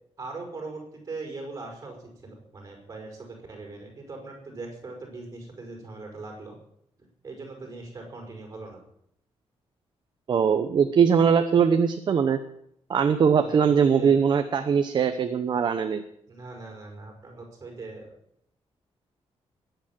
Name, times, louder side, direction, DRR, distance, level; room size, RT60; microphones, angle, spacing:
voice 1, 0.2-6.6 7.2-8.8 13.4-14.1 16.3-18.1, right 3 dB, 30° right, 2 dB, 5.4 m, -40 dB
voice 2, 10.3-12.4 12.9-16.0, right 6 dB, 45° right, 8 dB, 0.9 m, -21 dB
20.5 x 9.1 x 7.5 m, 0.75 s
wide cardioid pair, 180°, 11 cm